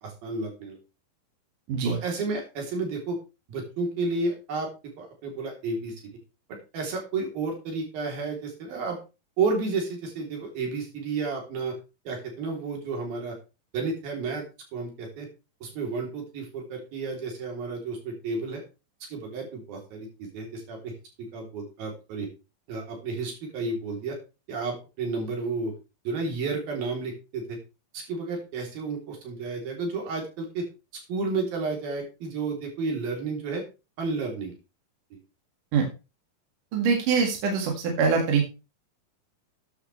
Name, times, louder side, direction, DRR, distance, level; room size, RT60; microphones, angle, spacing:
voice 1, 0.0-0.8 1.8-3.2 3.5-4.7 5.0-5.9 6.7-9.0 9.4-11.7 12.1-13.4 13.7-15.3 15.6-18.6 19.1-20.9 21.2-22.3 22.7-24.2 24.5-25.7 26.1-27.6 27.9-30.7 31.1-33.6 34.0-34.5 35.1-35.2, right 3 dB, 80° right, 1 dB, 5.1 m, -31 dB
voice 2, 36.7-38.5, right 5 dB, 65° right, 2 dB, 3.5 m, -23 dB
13.0 x 9.8 x 3.3 m, 0.30 s
omnidirectional pair, 4.1 m